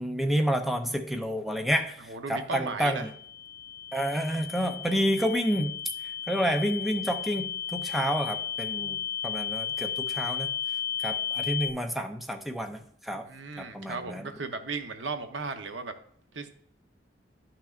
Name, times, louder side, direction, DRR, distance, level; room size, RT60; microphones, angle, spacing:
voice 1, 0.0-2.0 2.3-3.1 3.9-5.7 6.3-10.5 11.0-13.3 13.6-14.3, equal, ahead, 4 dB, 0.6 m, -29 dB
voice 2, 2.1-3.1 13.2-15.9 16.3-16.5, right 4 dB, 85° right, 7 dB, 0.8 m, -36 dB
sound 1, 2.8-11.7, left 9 dB, 55° left, 1.4 m, -34 dB
11.5 x 5.9 x 2.5 m, 0.63 s
head